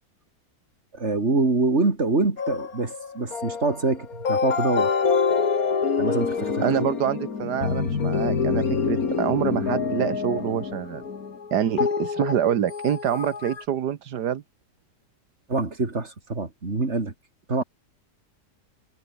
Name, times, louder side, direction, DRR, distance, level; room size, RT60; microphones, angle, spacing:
voice 1, 0.9-5.0 6.0-6.9 15.5-17.1 17.5-17.6, right 3 dB, 40° right, 3.6 m, -25 dB
sound 1, 2.4-13.6, left 5 dB, 60° left, 2.5 m, -26 dB
voice 2, 6.6-11.0 11.5-14.4, right 9 dB, 85° right, 1.7 m, -26 dB
omnidirectional pair, 1.7 m